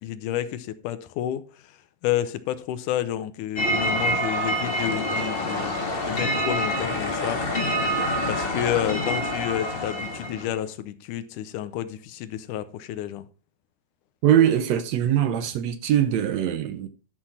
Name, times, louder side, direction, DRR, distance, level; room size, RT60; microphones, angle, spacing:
voice 1, 0.0-1.8 2.0-7.4 8.3-13.3, left 12 dB, 90° left, 2.3 m, -30 dB
sound 1, 3.6-10.6, equal, 35° left, 0.9 m, -26 dB
voice 2, 14.2-16.9, right 10 dB, 70° right, 1.9 m, -22 dB
12.0 x 6.1 x 4.2 m
omnidirectional pair, 3.5 m